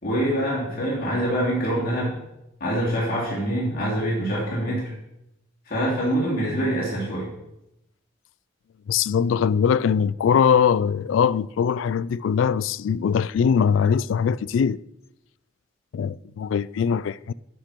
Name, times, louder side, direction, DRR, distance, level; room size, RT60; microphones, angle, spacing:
voice 1, 0.0-2.2 2.6-4.9 5.7-7.3, right 1 dB, 50° left, 3.3 m, -25 dB
voice 2, 8.9-14.8 15.9-17.3, left 7 dB, 80° left, 0.3 m, -21 dB
11.5 x 5.9 x 5.2 m
head